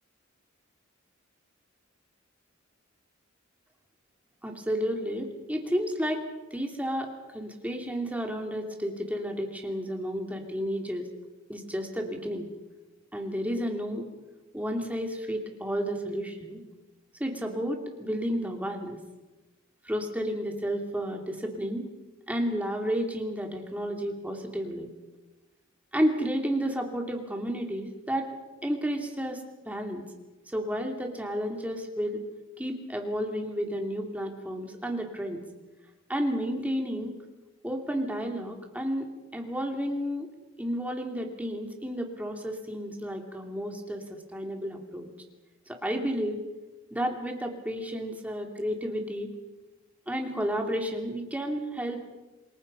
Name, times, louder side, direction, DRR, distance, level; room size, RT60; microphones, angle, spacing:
voice 1, 4.4-6.2 6.5-11.1 11.5-12.5 13.1-14.0 14.5-16.6 17.2-19.0 19.8-21.8 22.3-24.9 25.9-28.3 28.6-30.0 30.5-32.2 32.6-35.4 36.1-37.1 37.6-39.1 39.3-40.3 40.6-45.1 45.7-46.4 46.9-49.3 50.1-52.0, equal, 5° right, 2 dB, 2.9 m, -31 dB
28.0 x 21.0 x 5.5 m, 1.1 s
head